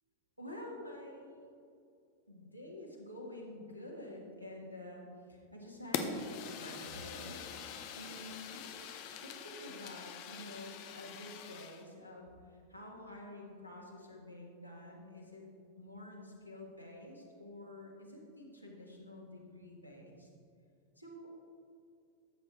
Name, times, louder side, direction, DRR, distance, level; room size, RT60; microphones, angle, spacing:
voice 1, 0.4-1.5 2.3-5.0 5.3-12.2 12.7-15.5 15.8-20.3 21.0-21.4, left 1 dB, 90° right, -1 dB, 1.7 m, -49 dB
Fire, 5.9-11.8, left 6 dB, 45° left, 0.8 m, -43 dB
13.0 x 7.9 x 3.3 m, 2.4 s
figure-of-eight pair, 90°, 0 cm